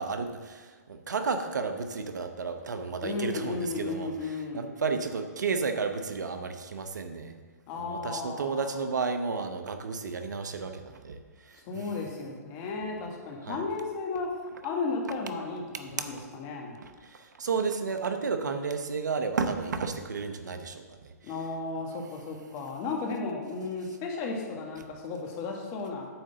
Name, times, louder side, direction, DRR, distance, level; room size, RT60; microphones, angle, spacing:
voice 1, 0.0-4.1 4.5-7.4 7.8-11.2 11.5-11.9 13.4-13.6 16.8-21.1, right 5 dB, 80° right, 7 dB, 0.8 m, -32 dB
voice 2, 3.0-4.7 7.7-8.8 11.6-14.3 14.6-16.8 21.2-26.1, left 4 dB, 35° left, 0 dB, 1.6 m, -34 dB
9.0 x 3.8 x 6.7 m, 1.4 s
hypercardioid pair, 135°, 9 cm